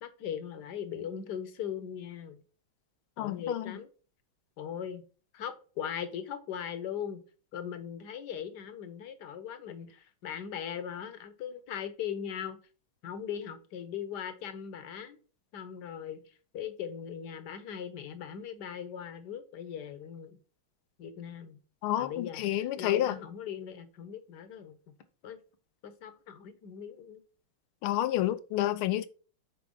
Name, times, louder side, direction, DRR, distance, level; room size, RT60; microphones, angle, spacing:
voice 1, 0.0-2.4 3.2-3.9 4.6-5.0 5.3-7.2 7.5-12.6 13.0-15.2 15.5-20.4 21.0-21.6 22.0-24.8 25.2-25.4 25.8-27.2, left 8 dB, 60° left, 1.4 m, -39 dB
voice 2, 3.2-3.8 21.8-23.2 27.8-29.1, left 13 dB, 90° left, 1.5 m, -29 dB
6.2 x 4.7 x 5.3 m
omnidirectional pair, 2.3 m